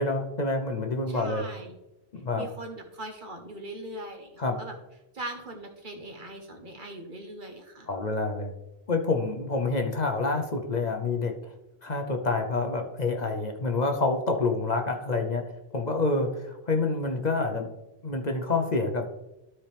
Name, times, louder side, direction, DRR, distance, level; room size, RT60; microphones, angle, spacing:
voice 1, 0.0-1.4 2.1-2.5 4.4-4.6 7.9-8.5 8.9-11.5 11.8-15.4 15.7-17.7 18.0-19.0, left 3 dB, 45° left, 4 dB, 0.9 m, -27 dB
voice 2, 1.1-1.7 2.3-4.7 5.1-7.9, right 1 dB, 50° right, 4 dB, 1.3 m, -40 dB
13.0 x 4.4 x 3.4 m, 0.94 s
omnidirectional pair, 1.1 m